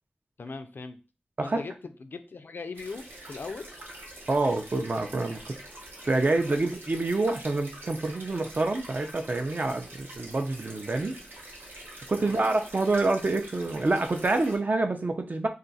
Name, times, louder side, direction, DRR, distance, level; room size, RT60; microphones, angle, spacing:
voice 1, 0.4-1.0 1.4-3.7 12.2-12.4, left 4 dB, 70° left, 9 dB, 0.4 m, -39 dB
sound 1, 2.7-14.6, right 1 dB, 90° right, 0.9 m, -45 dB
voice 2, 4.3-5.4 6.1-11.2 12.1-15.5, right 2 dB, 50° right, 5 dB, 0.5 m, -27 dB
2.4 x 2.4 x 3.9 m, 0.32 s
wide cardioid pair, 55°, 4 cm